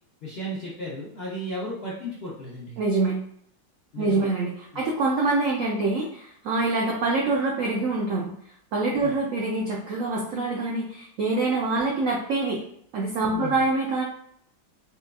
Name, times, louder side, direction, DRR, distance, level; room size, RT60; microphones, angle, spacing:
voice 1, 0.2-2.8 3.9-4.3 4.7-4.8 9.0-9.1 13.3-13.6, equal, 60° left, -7 dB, 0.6 m, -34 dB
voice 2, 2.8-3.2 4.0-8.3 8.7-12.6 12.9-14.0, right 3 dB, 90° right, -2 dB, 0.7 m, -25 dB
4.2 x 2.3 x 2.2 m, 0.69 s
omnidirectional pair, 2.0 m